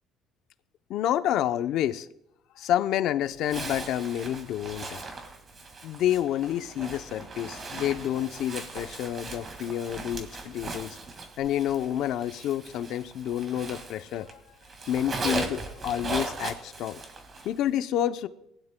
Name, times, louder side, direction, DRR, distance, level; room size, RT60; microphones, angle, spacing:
voice 1, 0.9-2.1 2.6-5.0 5.8-11.0 11.4-14.4 14.9-17.0 17.4-18.3, left 11 dB, 65° left, 11 dB, 0.6 m, -29 dB
Zipper (clothing), 3.4-14.3 14.6-17.6, right 3 dB, 30° right, 1.9 m, -38 dB
19.5 x 11.0 x 2.2 m, 0.80 s
cardioid pair, 125°, 0 cm